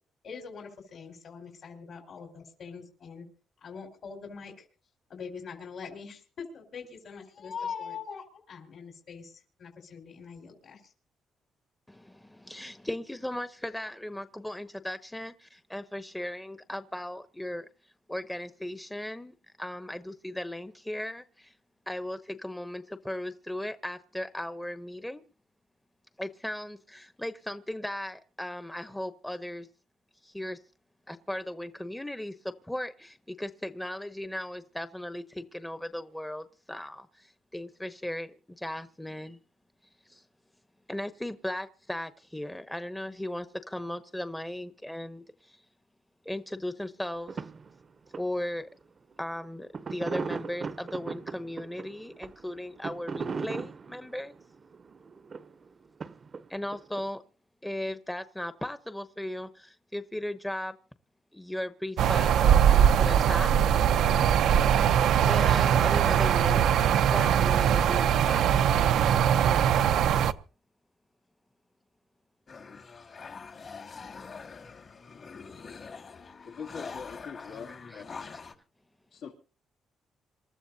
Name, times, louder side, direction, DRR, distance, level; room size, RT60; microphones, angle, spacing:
voice 1, 0.2-3.3 3.6-4.6 5.1-10.9, left 6 dB, 65° left, 4.5 m, -42 dB
voice 2, 11.9-17.7 18.1-21.5 21.9-25.2 26.2-29.7 30.2-30.6 31.1-39.4 40.0-40.2 40.9-45.6 46.2-47.4 48.2-48.7 49.2-54.3 56.5-57.2 57.6-60.8 61.3-63.5 64.8-66.7 67.0-68.5 77.9-78.0, left 1 dB, 10° left, 0.9 m, -37 dB
sound 1, 47.3-47.7 48.1-48.2 48.6-48.7 49.7-55.7 56.0-57.0, right 5 dB, 45° right, 0.8 m, -38 dB
sound 2, 62.0-70.3, right 9 dB, 80° right, 0.7 m, -22 dB
sound 3, 72.5-78.5, left 5 dB, 45° left, 2.0 m, -44 dB
voice 3, 76.4-78.3 79.1-79.3, left 6 dB, 80° left, 2.8 m, -43 dB
27.0 x 13.5 x 2.8 m
cardioid pair, 90°, 0 cm